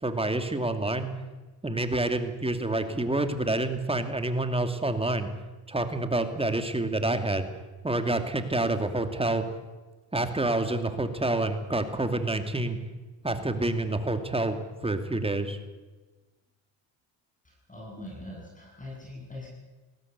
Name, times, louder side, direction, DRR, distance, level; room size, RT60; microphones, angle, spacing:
voice 1, 0.0-1.1 1.6-5.3 5.7-7.5 7.8-9.4 10.1-12.8 13.2-14.6 14.8-15.6, right 2 dB, 10° right, 8 dB, 2.5 m, -28 dB
voice 2, 17.4-19.5, left 1 dB, 15° left, -2 dB, 7.6 m, -42 dB
20.5 x 17.0 x 8.3 m, 1.2 s
cardioid pair, 95°, 50 cm